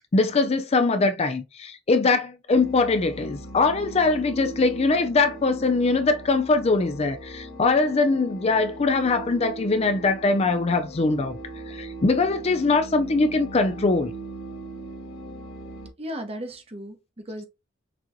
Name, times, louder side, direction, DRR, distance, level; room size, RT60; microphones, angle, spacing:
voice 1, 0.1-11.4 11.7-14.1, left 3 dB, 30° left, 0.4 m, -22 dB
sound 1, 2.5-15.9, right 2 dB, 85° left, 1.7 m, -40 dB
voice 2, 16.0-17.4, equal, 30° right, 0.9 m, -36 dB
6.0 x 3.0 x 2.6 m
head